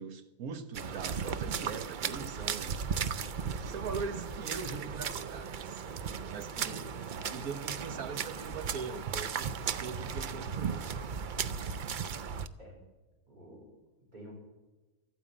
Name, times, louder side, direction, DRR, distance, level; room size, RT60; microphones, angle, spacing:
voice 1, 0.0-2.8 3.6-5.8 6.3-6.9 7.3-9.5 9.8-10.8, right 5 dB, 85° right, 10 dB, 1.4 m, -41 dB
sound 1, 0.7-12.5, right 6 dB, 60° right, 0.5 m, -36 dB
voice 2, 6.6-7.4 12.6-12.8 13.3-13.7 14.0-14.3, right 1 dB, 30° right, -2 dB, 4.9 m, -51 dB
13.0 x 9.1 x 8.6 m, 1.2 s
omnidirectional pair, 1.5 m